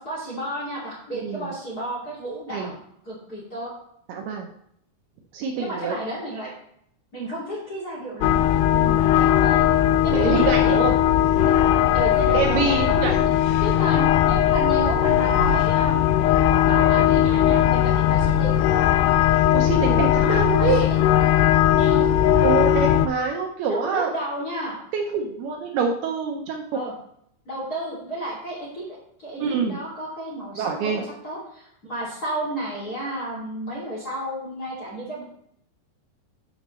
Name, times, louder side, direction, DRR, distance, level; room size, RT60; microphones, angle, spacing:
voice 1, 0.0-3.7 5.6-6.5 7.1-8.4 8.7-9.6 10.0-10.8 11.4-11.5 11.9-13.1 13.6-16.0 16.6-18.6 20.6-21.0 21.7-22.1 23.7-24.8 26.7-26.9 27.5-28.8 29.2-35.2, right 1 dB, 25° left, -4 dB, 2.4 m, -32 dB
voice 2, 1.1-1.5 2.5-2.7 4.1-4.5 5.3-5.9 10.1-10.9 12.3-13.3 19.5-20.9 22.4-24.1 24.9-26.6 29.4-29.8 30.6-31.0, right 5 dB, 75° right, 1 dB, 2.5 m, -25 dB
sound 1, 8.2-23.1, left 11 dB, 85° left, 2.4 m, -19 dB
12.0 x 7.1 x 3.1 m, 0.70 s
omnidirectional pair, 5.1 m